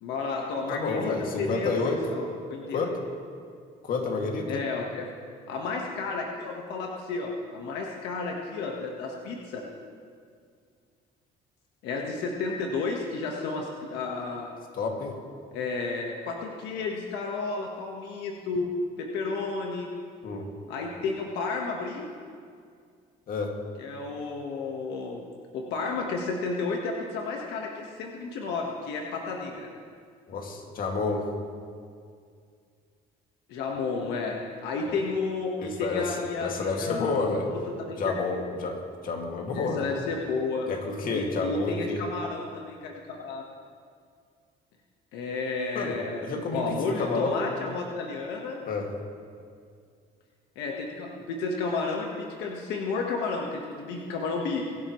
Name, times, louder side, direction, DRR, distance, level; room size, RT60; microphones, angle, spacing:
voice 1, 0.0-2.8 4.5-5.1 5.5-9.6 11.8-14.5 15.5-18.7 19.0-19.9 20.7-22.0 23.8-25.2 25.5-29.7 33.5-34.3 34.6-37.2 37.4-38.2 39.5-40.7 41.1-43.5 45.1-48.6 50.5-54.8, left 4 dB, 90° left, 0 dB, 1.4 m, -32 dB
voice 2, 0.7-2.0 2.7-3.0 3.8-4.6 14.7-15.2 20.2-20.5 23.3-23.6 30.3-31.3 34.9-35.0 35.6-37.5 38.0-40.0 40.6-42.0 45.7-47.4 48.7-48.9, left 3 dB, 55° left, 1 dB, 2.3 m, -30 dB
23.0 x 11.5 x 3.2 m, 2.2 s
cardioid pair, 110°, 17 cm